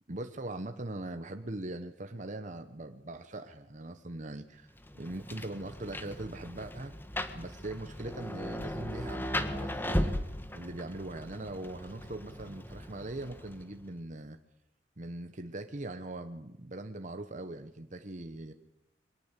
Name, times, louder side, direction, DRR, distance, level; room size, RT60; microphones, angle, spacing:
voice 1, 0.1-4.7 4.9-6.9 7.3-10.1 10.5-14.4 15.0-18.5, right 2 dB, 40° right, 7 dB, 1.1 m, -41 dB
Rain, 4.8-13.8, left 1 dB, 10° left, 1.6 m, -37 dB
23.0 x 19.5 x 8.3 m, 0.86 s
head